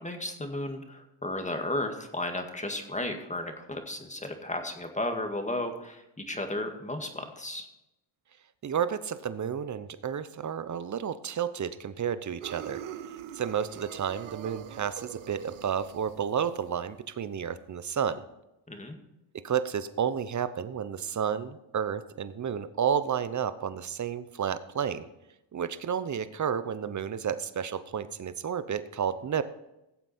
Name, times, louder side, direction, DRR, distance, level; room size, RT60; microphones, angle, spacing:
voice 1, 0.0-7.7 18.7-19.0, left 1 dB, 15° left, 5 dB, 1.9 m, -34 dB
voice 2, 8.6-12.8 13.3-18.2 19.4-25.1 25.5-29.4, right 8 dB, 35° right, 14 dB, 0.9 m, -31 dB
sound 1, 12.4-16.7, right 10 dB, 85° right, 0.9 m, -43 dB
17.0 x 7.6 x 4.3 m, 0.91 s
cardioid pair, 75°, 49 cm